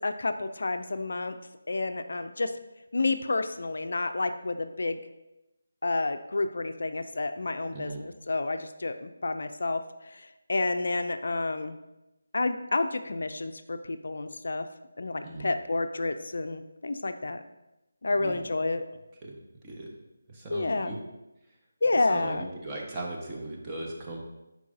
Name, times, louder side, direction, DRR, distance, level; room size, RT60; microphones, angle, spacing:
voice 1, 0.0-1.3 1.7-2.5 2.9-5.0 5.8-11.7 12.3-14.7 15.0-17.4 18.0-18.8 20.5-20.9 21.8-22.5, left 3 dB, 65° left, 9 dB, 0.4 m, -30 dB
voice 2, 7.7-8.0 15.2-15.5 18.1-18.5 19.2-19.4 19.6-19.9 20.3-21.0 22.1-24.2, right 2 dB, 20° right, -2 dB, 1.0 m, -38 dB
8.2 x 4.7 x 2.6 m, 0.97 s
figure-of-eight pair, 160°, 0 cm